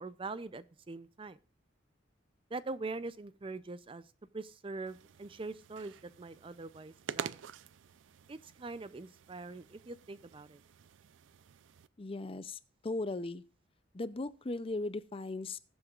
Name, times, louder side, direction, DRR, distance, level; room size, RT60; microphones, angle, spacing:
voice 1, 0.0-1.4 2.5-4.0 4.3-7.4 8.3-10.6, right 3 dB, 30° right, 15 dB, 0.5 m, -43 dB
sound 1, 4.9-11.9, right 7 dB, 90° right, 0.4 m, -48 dB
voice 2, 12.0-13.4 13.9-15.6, left 2 dB, 30° left, 15 dB, 0.5 m, -38 dB
20.0 x 7.9 x 2.4 m, 0.38 s
head